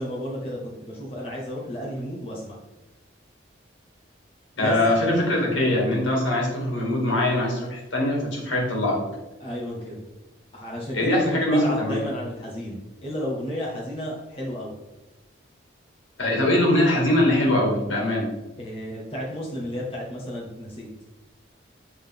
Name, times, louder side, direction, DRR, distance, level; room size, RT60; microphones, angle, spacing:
voice 1, 0.0-2.6 4.6-5.3 9.4-10.0 10.5-14.8 18.6-20.9, equal, 30° left, -5 dB, 1.4 m, -32 dB
voice 2, 4.6-9.0 10.9-12.0 16.2-18.3, left 1 dB, 80° left, -2 dB, 2.1 m, -22 dB
8.2 x 3.9 x 3.5 m, 0.99 s
head